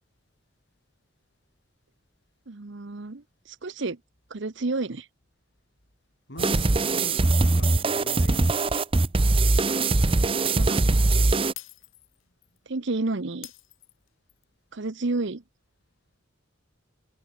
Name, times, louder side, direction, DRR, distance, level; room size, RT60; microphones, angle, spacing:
voice 1, 2.5-4.0 4.3-5.1 10.5-11.0 12.7-13.5 14.7-15.4, right 3 dB, 60° right, 0.9 m, -30 dB
voice 2, 6.3-8.5, left 1 dB, 55° left, 4.9 m, -43 dB
sound 1, 6.4-11.5, right 2 dB, 25° right, 0.7 m, -22 dB
Shatter, 9.5-10.1 10.4-10.5 11.6-12.6 13.4-14.4, left 15 dB, 75° left, 4.0 m, -46 dB
head